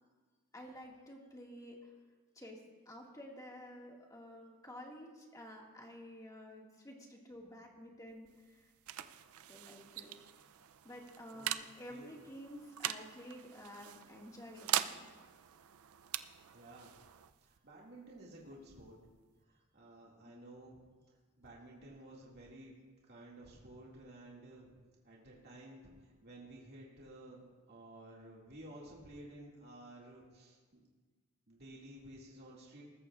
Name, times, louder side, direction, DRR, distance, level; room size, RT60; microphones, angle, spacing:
voice 1, 0.5-1.9 2.4-8.7 9.5-10.2 10.8-15.1 20.2-20.3, equal, 15° left, -1 dB, 1.9 m, -51 dB
sound 1, 8.1-19.4, right 12 dB, 75° right, 0.5 m, -43 dB
voice 2, 11.9-12.2 16.5-16.9 17.4-19.0 19.5-20.8 21.4-22.7 23.1-24.7 25.0-30.8 31.5-32.8, right 1 dB, 50° right, -4 dB, 2.2 m, -54 dB
20.5 x 14.0 x 2.4 m, 1.4 s
head